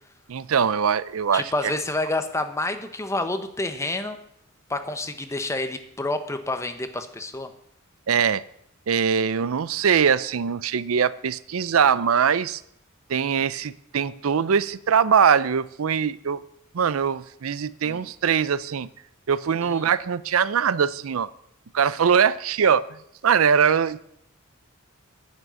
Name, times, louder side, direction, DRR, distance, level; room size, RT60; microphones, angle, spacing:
voice 1, 0.3-1.5 8.1-8.4 8.9-12.6 13.1-16.4 16.7-18.9 19.3-21.3 21.7-22.9 23.2-24.0, right 7 dB, 80° right, 18 dB, 0.5 m, -22 dB
voice 2, 1.3-4.2 4.7-7.5 17.8-18.1 19.6-19.9, left 2 dB, 15° left, 8 dB, 1.0 m, -29 dB
9.8 x 7.5 x 9.3 m, 0.74 s
head